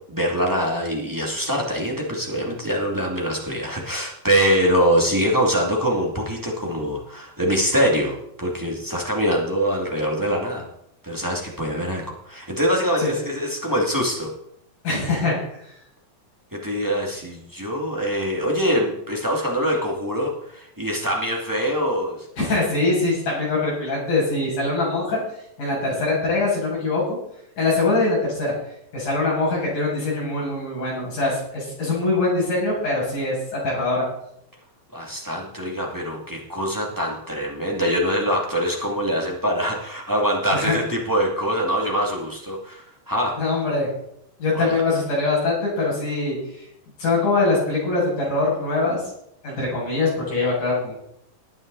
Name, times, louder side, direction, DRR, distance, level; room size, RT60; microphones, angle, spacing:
voice 1, 0.0-10.6 11.0-14.3 16.5-22.2 34.9-43.3 44.5-44.8, equal, 5° right, -1 dB, 1.6 m, -24 dB
voice 2, 14.8-15.6 22.4-25.2 25.6-27.2 27.6-28.5 28.9-34.1 40.5-40.8 43.4-43.9 44.4-46.4 47.0-49.0 49.4-50.9, left 3 dB, 55° left, -6 dB, 8.6 m, -23 dB
19.5 x 9.2 x 4.1 m, 0.74 s
omnidirectional pair, 4.4 m